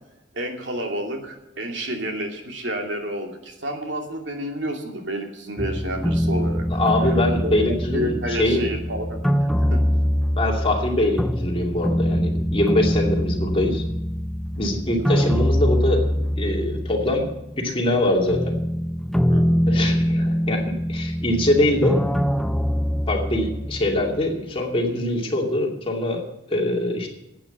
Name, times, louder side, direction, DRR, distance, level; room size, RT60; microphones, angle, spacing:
voice 1, 0.3-6.8 7.4-9.8 19.3-19.6, right 1 dB, 75° right, 2 dB, 2.6 m, -30 dB
sound 1, 5.6-17.6 17.9-24.4, equal, ahead, 0.4 m, -23 dB
voice 2, 6.7-8.6 10.4-13.8 14.6-16.0 16.4-17.3 17.6-18.6 19.7-22.0 23.1-27.1, left 1 dB, 30° left, 0 dB, 2.6 m, -23 dB
11.5 x 8.8 x 8.1 m, 0.89 s
head